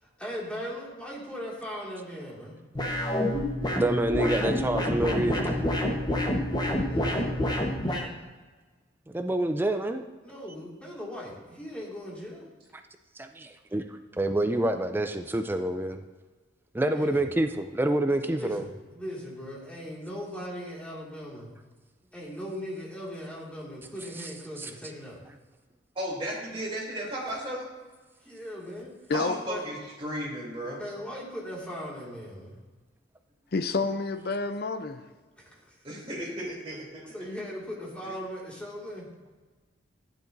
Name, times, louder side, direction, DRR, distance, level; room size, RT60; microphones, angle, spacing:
voice 1, 0.0-2.6 6.6-7.5 10.2-12.4 16.9-17.3 18.1-21.5 22.1-25.2 28.2-28.9 29.5-29.7 30.8-32.6 35.4-36.0 37.1-39.1, equal, 5° left, -4 dB, 2.1 m, -39 dB
sound 1, 2.7-8.1, left 1 dB, 20° left, 1.1 m, -28 dB
voice 2, 3.7-5.6 9.1-10.0 13.2-16.0 16.7-18.6 24.6-24.7, right 1 dB, 10° right, 7 dB, 0.3 m, -27 dB
voice 3, 25.9-27.6 29.1-30.8 35.8-37.1, equal, 30° right, -5 dB, 3.0 m, -34 dB
voice 4, 33.5-35.1, left 3 dB, 55° left, 9 dB, 0.5 m, -29 dB
12.5 x 10.5 x 2.6 m, 1.3 s
head